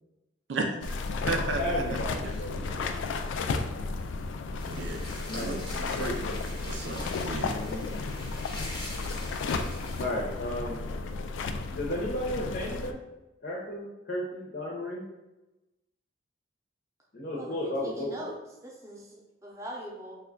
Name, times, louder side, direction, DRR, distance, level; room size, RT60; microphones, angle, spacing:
voice 1, 0.5-1.8 4.7-6.3 6.6-7.6, right 3 dB, 80° right, 4 dB, 0.4 m, -35 dB
sound 1, 0.8-12.9, left 3 dB, 85° left, 0.3 m, -33 dB
voice 2, 1.6-3.0 5.3-5.7 5.9-6.3 7.3-7.9 10.0-10.9 11.7-13.0 13.4-15.1 17.1-18.1, left 1 dB, 60° left, -4 dB, 0.7 m, -34 dB
sound 2, 4.6-10.0, left 1 dB, 25° left, 0.6 m, -43 dB
voice 3, 17.3-18.3 18.6-20.2, right 1 dB, 15° right, -3 dB, 0.6 m, -42 dB
3.2 x 2.3 x 3.7 m, 1.0 s
head